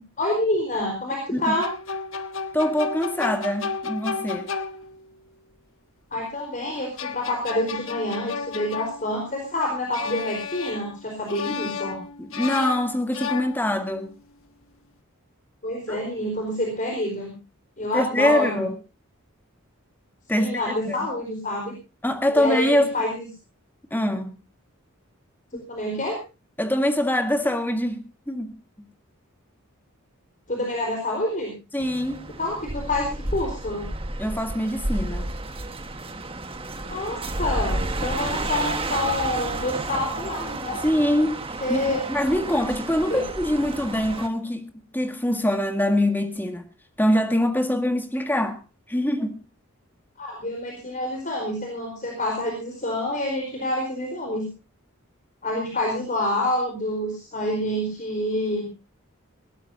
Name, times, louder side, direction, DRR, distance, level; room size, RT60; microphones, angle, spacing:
voice 1, 0.0-1.7 6.1-12.0 15.6-17.3 17.8-18.7 20.4-21.7 22.3-23.3 25.7-26.2 30.5-31.5 32.4-33.9 36.9-40.8 41.6-42.0 43.1-43.2 50.2-54.5 55.4-58.7, left 1 dB, 35° left, 4.5 m, -27 dB
sound 1, 1.5-5.2 6.8-9.5 9.9-11.0 11.3-14.0, left 5 dB, 65° left, 1.4 m, -33 dB
voice 2, 2.5-4.5 12.2-14.1 15.9-16.0 17.9-18.7 20.3-21.0 22.0-22.9 23.9-24.4 25.5-25.6 26.6-28.0 28.3-28.9 31.7-32.3 34.2-35.3 40.8-41.4 41.7-46.7 47.0-48.6 48.9-49.4, left 1 dB, 10° left, 1.8 m, -24 dB
sound 2, 31.8-44.3, right 2 dB, 25° right, 1.4 m, -31 dB
20.0 x 17.5 x 2.8 m
head